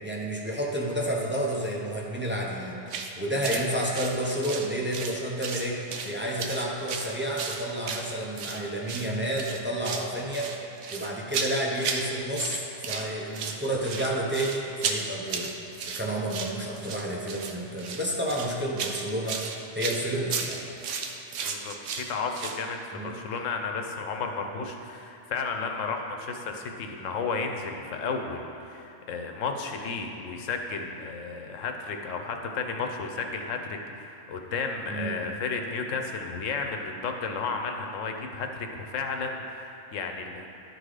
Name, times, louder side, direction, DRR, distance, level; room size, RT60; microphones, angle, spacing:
voice 1, 0.0-2.8 3.2-10.5 10.9-15.5 15.9-20.6 22.9-23.2 34.9-35.2, right 1 dB, 10° right, -3 dB, 0.6 m, -30 dB
sound 1, 2.9-3.1 3.4-3.6 3.9-5.2 5.4-6.1 6.4-8.6 8.9-9.1 9.4-10.1 10.3-12.1 12.3-13.1 13.3-22.6, right 5 dB, 80° right, 1.0 m, -34 dB
voice 2, 21.4-40.5, left 4 dB, 90° left, 4 dB, 1.1 m, -33 dB
11.5 x 3.9 x 4.9 m, 2.8 s
omnidirectional pair, 1.3 m